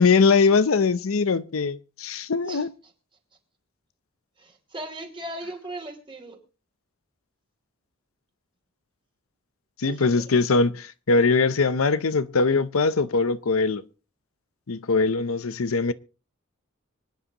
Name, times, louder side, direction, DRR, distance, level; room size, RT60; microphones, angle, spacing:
voice 1, 0.0-2.7 9.8-13.8 14.7-15.9, left 4 dB, 90° left, 0.7 m, -21 dB
voice 2, 2.4-2.9 4.4-6.4 9.8-10.3, right 1 dB, 25° right, 2.9 m, -38 dB
25.0 x 9.9 x 2.9 m
head